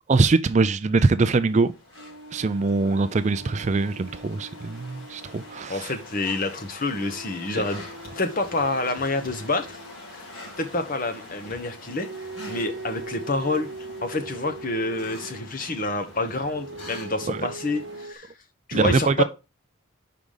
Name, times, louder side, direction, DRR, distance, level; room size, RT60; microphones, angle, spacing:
voice 1, 0.1-1.7 2.3-5.9 7.5-7.6 17.3-17.4 18.7-19.2, right 3 dB, 35° right, 0.4 m, -22 dB
sound 1, 0.8-18.1, left 1 dB, 75° left, 3.7 m, -44 dB
sound 2, 2.0-5.7 6.9-10.0 12.0-15.5 16.5-18.2, right 2 dB, 55° right, 1.0 m, -41 dB
voice 2, 5.7-7.8 8.1-9.8 10.1-10.3 10.6-12.1 12.5-13.7 14.0-18.3 18.7-19.2, left 2 dB, 40° left, 1.1 m, -28 dB
5.1 x 4.8 x 5.4 m
head